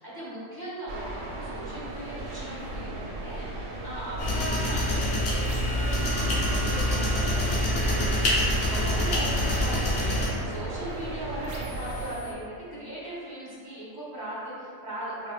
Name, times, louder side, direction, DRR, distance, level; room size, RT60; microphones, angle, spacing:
voice 1, 0.0-15.3, right 1 dB, 20° left, -10 dB, 0.7 m, -38 dB
sound 1, 0.9-12.2, right 2 dB, 90° right, 1.0 m, -36 dB
sound 2, 4.2-10.3, left 1 dB, 70° left, 1.0 m, -26 dB
sound 3, 5.4-11.0 11.4-12.3, right 4 dB, 65° right, 0.4 m, -41 dB
3.6 x 2.5 x 2.2 m, 2.4 s
omnidirectional pair, 1.3 m